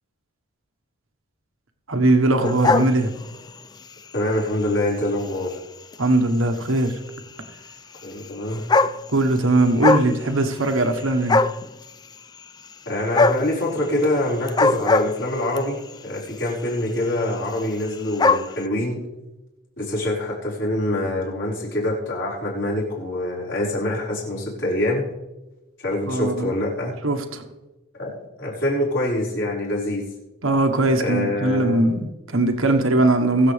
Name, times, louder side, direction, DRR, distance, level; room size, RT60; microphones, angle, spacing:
voice 1, 1.9-3.1 6.0-6.9 9.1-11.4 26.1-26.5 27.0-27.4 30.4-33.5, right 2 dB, 80° right, 5 dB, 1.4 m, -20 dB
sound 1, 2.4-3.6 4.2-4.4 5.3-5.4 5.5-5.6 5.9-6.0 7.2-7.3 8.2-8.3 8.5-9.4 9.7-10.1 10.4-11.0 11.3-11.7 13.1-13.5 14.4-15.6 16.5-16.8 17.0-17.1 17.3-17.4 17.6-18.5, left 3 dB, 20° left, 0.3 m, -19 dB
voice 2, 4.1-5.6 8.0-8.6 12.8-15.8 16.0-19.0 19.8-25.0 25.8-26.9 28.0-30.0 31.0-31.9, left 1 dB, 60° left, -6 dB, 5.0 m, -25 dB
22.5 x 7.6 x 3.4 m, 1.0 s
head